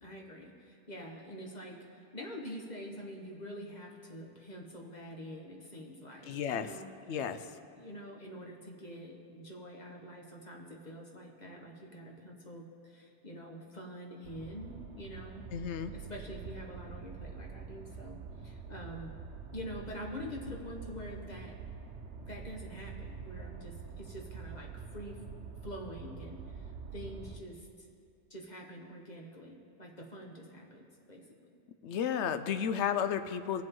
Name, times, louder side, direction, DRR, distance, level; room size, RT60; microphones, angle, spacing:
voice 1, 0.0-6.9 7.4-7.5 7.8-15.5 15.9-19.1 19.5-21.6 22.2-25.2 25.6-27.9 28.3-31.2, equal, 40° left, 0 dB, 1.6 m, -46 dB
voice 2, 6.3-6.7 7.1-7.4 15.5-15.9 31.8-33.6, left 8 dB, 80° left, 10 dB, 0.9 m, -32 dB
sound 1, 14.2-27.4, right 5 dB, 80° right, 1.0 m, -46 dB
21.0 x 7.7 x 3.8 m, 2.5 s
omnidirectional pair, 1.2 m